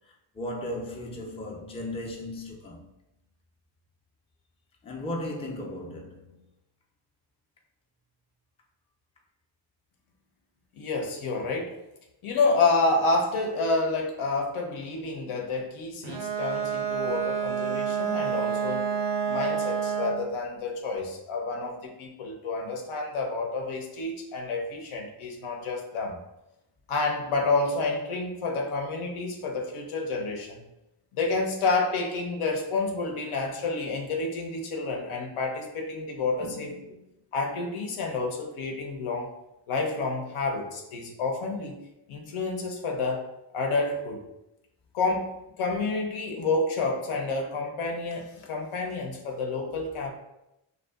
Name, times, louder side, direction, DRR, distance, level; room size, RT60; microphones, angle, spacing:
voice 1, 0.1-2.8 4.8-6.4 36.4-36.9, left 1 dB, 10° left, 0.4 m, -36 dB
voice 2, 10.7-11.8 12.2-18.9 19.3-26.2 26.9-30.6 31.1-36.7 37.3-39.3 39.7-41.8 42.1-43.2 43.5-44.2 44.9-50.1, left 3 dB, 75° left, 0.7 m, -29 dB
Bowed string instrument, 16.0-20.3, right 7 dB, 60° right, 0.5 m, -29 dB
2.5 x 2.3 x 2.3 m
cardioid pair, 60°, 50 cm